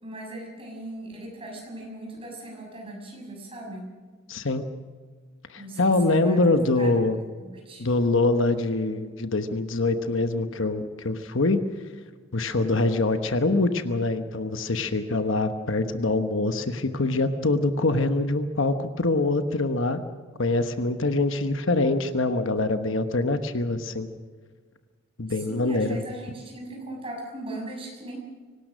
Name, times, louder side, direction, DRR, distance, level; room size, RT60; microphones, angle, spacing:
voice 1, 0.0-4.0 5.6-6.4 6.7-7.0 7.4-7.9 25.3-28.2, right 1 dB, 25° right, 0 dB, 6.6 m, -39 dB
voice 2, 4.3-4.6 5.5-7.2 7.8-11.6 12.3-20.0 20.4-24.1 25.2-26.0, left 2 dB, 60° left, 8 dB, 1.1 m, -24 dB
24.5 x 18.5 x 6.3 m, 1.5 s
head